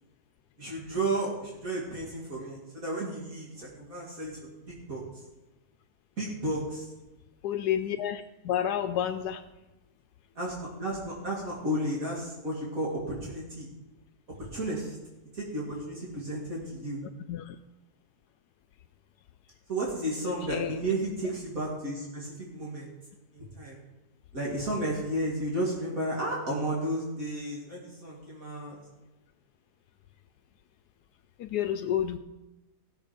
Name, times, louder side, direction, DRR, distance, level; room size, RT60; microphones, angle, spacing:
voice 1, 0.6-4.4 4.7-5.0 6.2-6.9 10.4-13.7 14.5-15.0 15.3-17.0 19.7-22.9 23.3-23.8 24.3-28.8, right 1 dB, 60° right, -4 dB, 2.8 m, -33 dB
voice 2, 7.4-9.4 17.3-17.6 20.5-20.8 31.4-32.2, left 10 dB, 80° left, 9 dB, 1.2 m, -30 dB
16.5 x 7.3 x 5.2 m, 1.0 s
omnidirectional pair, 1.7 m